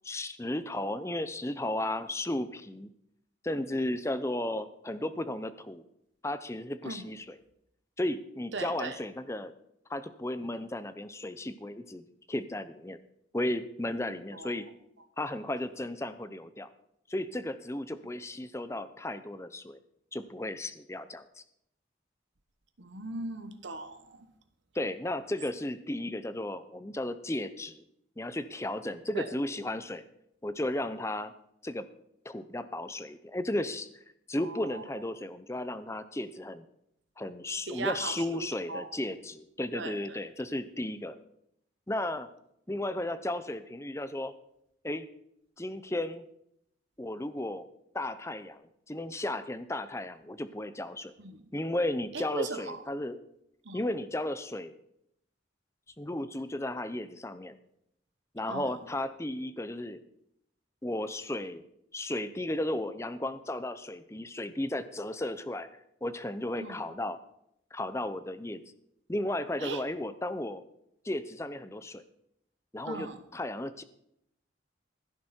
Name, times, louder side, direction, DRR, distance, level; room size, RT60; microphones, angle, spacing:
voice 1, 0.0-2.9 3.4-5.8 6.2-7.4 8.0-9.5 9.9-13.0 13.3-14.6 15.2-16.7 17.1-19.8 20.1-21.4 24.7-27.8 28.2-30.0 30.4-31.3 31.6-31.9 32.2-33.9 34.3-36.7 37.2-41.2 41.9-42.3 42.7-44.3 44.8-45.1 45.6-46.2 47.0-47.7 47.9-51.1 51.5-53.2 53.7-54.8 56.0-57.6 58.3-60.0 60.8-61.6 61.9-65.7 66.0-67.2 67.7-68.6 69.1-70.6 71.0-72.0 72.7-73.8, left 1 dB, 15° left, 13 dB, 0.6 m, -34 dB
voice 2, 8.5-9.0 14.3-14.5 22.8-24.3 29.1-29.2 34.4-34.8 37.7-38.9 39.7-40.2 51.2-51.4 52.1-52.8 53.6-53.8 58.5-58.7 66.6-66.8 69.6-69.8 72.9-73.2, right 3 dB, 70° right, 9 dB, 1.3 m, -38 dB
16.0 x 10.0 x 4.4 m, 0.77 s
head